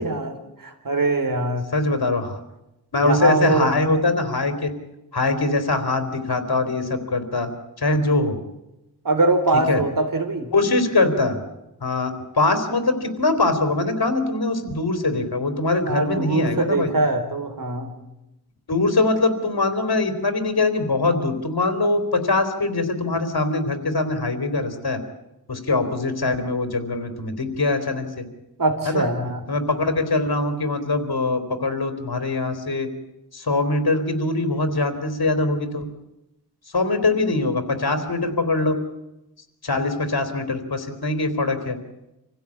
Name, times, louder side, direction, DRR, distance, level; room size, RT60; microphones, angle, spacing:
voice 1, 0.0-1.7 3.0-3.7 9.0-10.5 15.9-17.9 28.6-29.4, right 3 dB, 55° right, 6 dB, 3.6 m, -22 dB
voice 2, 1.7-2.4 2.9-4.7 5.1-7.5 7.8-8.4 9.7-9.8 10.5-11.4 11.8-16.9 18.7-25.0 25.5-28.2 28.9-29.1 29.5-32.9 33.3-35.8 36.7-38.8 39.6-41.8, left 2 dB, 70° left, 8 dB, 3.5 m, -22 dB
26.5 x 16.5 x 8.6 m, 0.92 s
wide cardioid pair, 90°, 39 cm